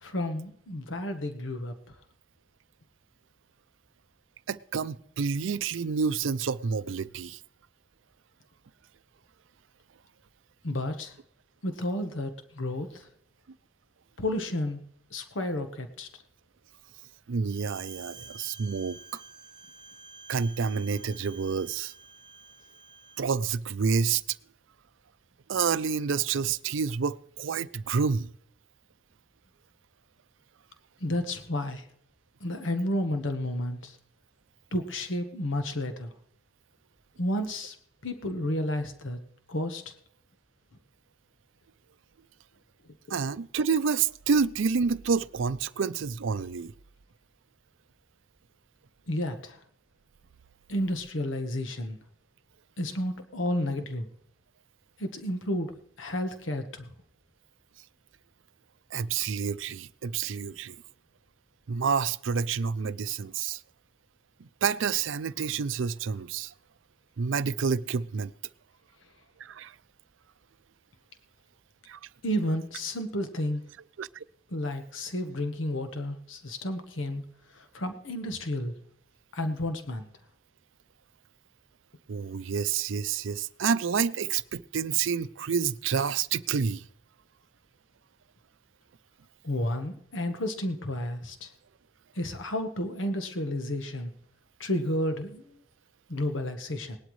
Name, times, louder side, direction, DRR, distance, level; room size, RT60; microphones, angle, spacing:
voice 1, 0.0-2.0 10.6-11.1 11.6-13.1 14.2-14.8 15.1-16.1 31.0-31.9 32.4-34.0 34.7-36.1 37.2-37.7 38.0-39.2 39.5-39.9 43.1-43.2 49.1-49.6 50.7-52.0 52.8-54.1 55.0-56.9 72.2-73.6 74.5-77.2 77.5-78.8 79.3-80.1 89.4-91.5 92.1-94.1 94.6-95.6 96.1-97.0, left 1 dB, 85° left, 1.2 m, -31 dB
voice 2, 4.5-7.4 17.3-19.2 20.3-21.9 23.2-24.4 25.5-28.3 43.1-46.7 58.9-60.8 61.7-63.6 64.4-66.5 67.2-68.3 69.4-69.7 71.9-72.0 74.0-74.2 82.1-86.8, right 6 dB, 85° right, 0.5 m, -29 dB
Bowed string instrument, 17.5-23.2, right 4 dB, 25° right, 0.9 m, -50 dB
19.0 x 12.0 x 3.2 m
head